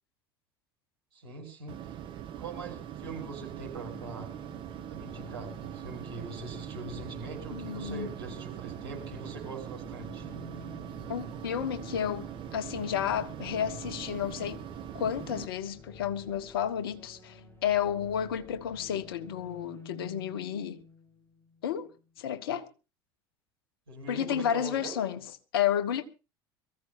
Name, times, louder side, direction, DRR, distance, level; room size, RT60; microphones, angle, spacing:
voice 1, 1.1-1.7 2.4-4.3 4.9-10.3 23.9-25.1, right 4 dB, 70° right, 6.2 m, -42 dB
sound 1, 1.7-15.5, right 10 dB, 40° right, 1.8 m, -42 dB
sound 2, 3.5-22.1, left 3 dB, 15° left, 6.1 m, -51 dB
voice 2, 7.5-8.1 11.1-14.6 14.9-20.8 21.6-21.9 22.2-22.7 24.1-25.2 25.5-26.0, left 9 dB, 65° left, 1.3 m, -31 dB
23.0 x 15.0 x 2.7 m
figure-of-eight pair, 70°, 13 cm